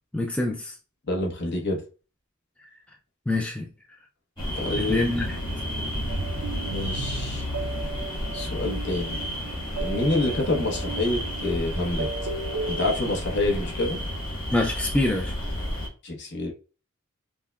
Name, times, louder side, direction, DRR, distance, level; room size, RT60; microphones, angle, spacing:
voice 1, 0.1-0.8 3.3-3.7 4.8-5.4 14.5-15.3, left 2 dB, 5° left, 0.3 m, -25 dB
voice 2, 1.1-1.8 4.5-5.0 6.6-7.5 8.3-9.2 9.8-12.1 12.7-14.0 16.0-16.5, left 2 dB, 55° left, 1.0 m, -27 dB
sound 1, 4.4-15.9, equal, 25° left, 1.3 m, -31 dB
sound 2, 6.1-12.9, right 3 dB, 70° right, 0.5 m, -35 dB
5.4 x 2.1 x 2.3 m
head